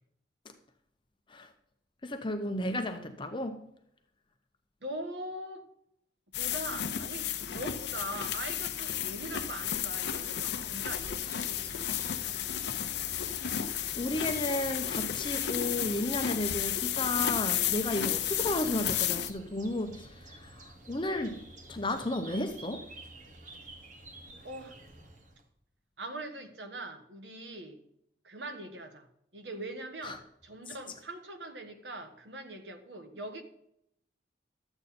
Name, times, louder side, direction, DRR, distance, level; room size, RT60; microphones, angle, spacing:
voice 1, 2.0-3.7 14.0-21.4 21.7-22.9 30.0-30.2, left 1 dB, 25° left, 0.8 m, -33 dB
voice 2, 4.8-5.7 6.3-11.7 24.4-24.8 26.0-27.8 28.2-29.1 29.3-33.4, right 1 dB, 75° right, 1.4 m, -42 dB
sound 1, 6.3-19.3, left 10 dB, 70° left, 0.7 m, -33 dB
sound 2, 10.6-25.5, right 1 dB, 45° right, 1.3 m, -51 dB
12.5 x 8.0 x 4.3 m
head